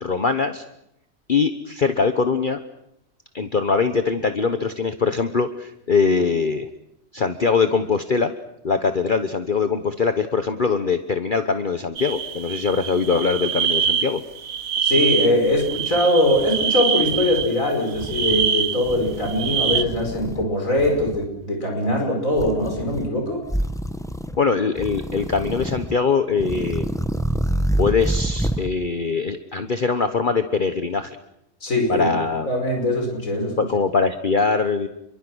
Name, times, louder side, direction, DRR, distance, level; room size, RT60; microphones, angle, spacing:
voice 1, 0.0-0.6 1.3-2.6 3.3-6.7 7.1-8.3 8.6-14.2 24.4-26.9 27.8-31.2 31.9-32.5 33.6-34.9, left 5 dB, 40° left, 8 dB, 1.3 m, -22 dB
sound 1, 12.0-19.8, right 7 dB, 90° right, 1.6 m, -25 dB
voice 2, 14.8-23.4 31.6-32.1 32.5-33.5, left 1 dB, 75° left, 2 dB, 5.9 m, -21 dB
sound 2, 15.5-16.6 17.0-17.5 17.9-18.5 18.8-20.5 20.8-21.3 22.3-23.1 23.4-24.4 24.8-26.0 26.3-28.7, right 1 dB, 5° left, 1.0 m, -28 dB
30.0 x 23.5 x 6.3 m, 0.80 s
omnidirectional pair, 1.4 m